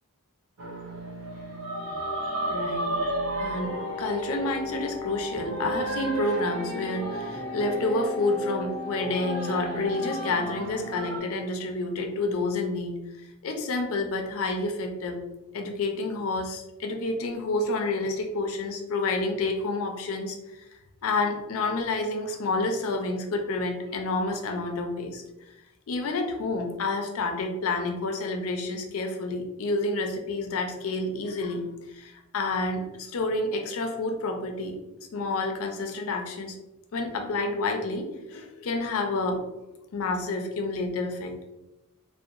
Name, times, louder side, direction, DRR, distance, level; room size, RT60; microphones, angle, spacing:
sound 1, 0.6-11.2, right 1 dB, 65° right, 0.6 m, -32 dB
voice 1, 2.4-2.9 3.4-15.2 15.5-20.7 21.0-25.2 25.9-34.8 35.1-36.6 36.9-39.4 39.9-41.5, left 2 dB, 65° left, 3 dB, 0.4 m, -29 dB
2.7 x 2.1 x 2.4 m, 0.98 s
head